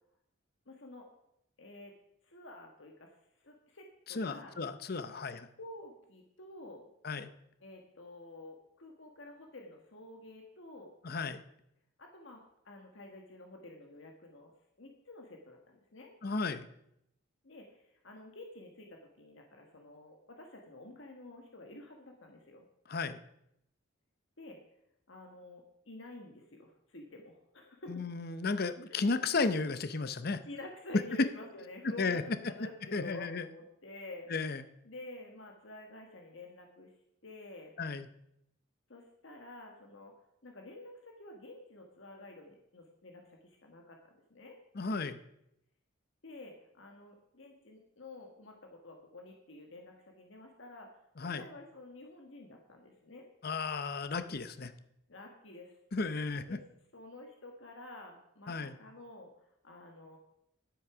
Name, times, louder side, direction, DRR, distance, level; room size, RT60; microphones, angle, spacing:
voice 1, 0.7-1.1 1.6-1.9 2.2-3.1 3.4-4.5 5.6-6.8 7.6-10.9 12.0-14.5 14.8-16.1 17.4-22.7 24.4-24.6 25.1-28.1 28.9-29.2 30.4-34.3 34.8-36.9 37.2-37.7 38.9-40.1 40.4-44.6 46.2-50.9 51.2-53.3 55.1-55.7 56.5-56.6 56.9-59.3 59.6-60.2, left 2 dB, 70° left, 2 dB, 1.5 m, -50 dB
voice 2, 4.1-5.5 7.0-7.3 11.0-11.4 16.2-16.7 22.9-23.2 27.9-30.4 31.2-31.3 32.0-32.2 32.9-33.5 34.3-34.6 37.8-38.1 44.7-45.2 51.2-51.4 53.4-54.7 55.9-56.6 58.5-58.8, left 4 dB, 50° left, 12 dB, 0.7 m, -34 dB
11.0 x 8.4 x 6.0 m, 0.78 s
head